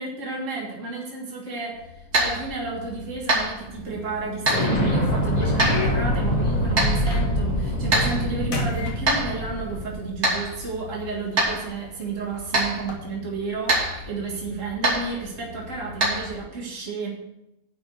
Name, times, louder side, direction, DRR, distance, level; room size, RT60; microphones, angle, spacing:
voice 1, 0.0-17.1, right 4 dB, 60° right, -2 dB, 2.3 m, -32 dB
sound 1, 1.7-16.3, right 2 dB, 75° right, 3.3 m, -28 dB
sound 2, 3.6-4.4 4.9-7.6 8.0-8.3 8.5-9.7 10.6-10.7 11.4-11.6 12.7-12.9, left 4 dB, 70° left, 1.8 m, -33 dB
Explosion, 4.4-10.0, equal, 30° left, 1.5 m, -24 dB
10.5 x 4.8 x 7.7 m, 0.89 s
omnidirectional pair, 1.5 m